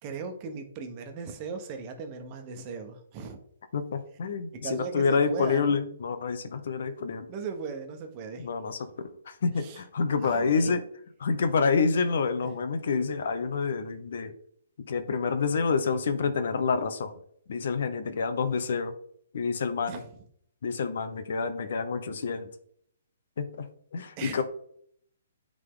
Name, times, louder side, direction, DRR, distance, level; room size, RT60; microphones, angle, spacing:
voice 1, 0.0-3.4 4.5-5.8 7.3-8.5 9.6-9.8 10.2-10.7 12.4-12.5 19.9-20.0 24.2-24.4, right 5 dB, 35° right, 5 dB, 1.3 m, -38 dB
voice 2, 3.7-7.3 8.4-10.8 11.2-14.3 14.9-17.1 17.5-18.9 19.3-19.9 20.6-22.5 23.4-23.7 23.9-24.4, left 5 dB, 65° left, 10 dB, 0.9 m, -28 dB
9.6 x 3.8 x 3.8 m, 0.66 s
hypercardioid pair, 140°, 0 cm